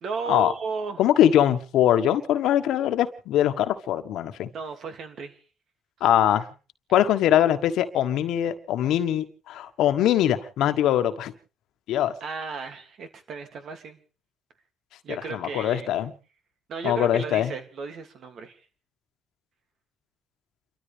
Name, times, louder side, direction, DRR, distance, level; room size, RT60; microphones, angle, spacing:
voice 1, 0.0-1.0 4.5-5.3 12.2-14.0 15.0-15.9 16.7-18.6, right 5 dB, 65° right, 2.7 m, -34 dB
voice 2, 1.0-4.5 6.0-6.4 6.9-11.3 11.9-12.1 15.1-16.1 16.8-17.5, left 11 dB, 85° left, 1.5 m, -22 dB
30.0 x 13.5 x 3.5 m
cardioid pair, 90°, 0 cm